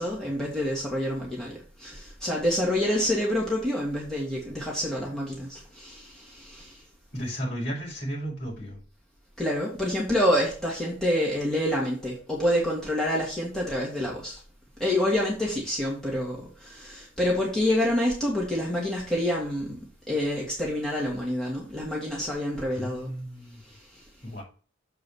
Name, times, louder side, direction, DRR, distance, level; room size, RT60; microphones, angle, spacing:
voice 1, 0.0-6.8 9.4-14.4 14.8-19.8 20.1-23.1 23.7-24.0, left 1 dB, 5° left, 2.0 m, -27 dB
voice 2, 7.1-8.8 22.7-23.6 24.2-24.4, equal, 60° left, 5.2 m, -34 dB
7.0 x 4.7 x 6.2 m
head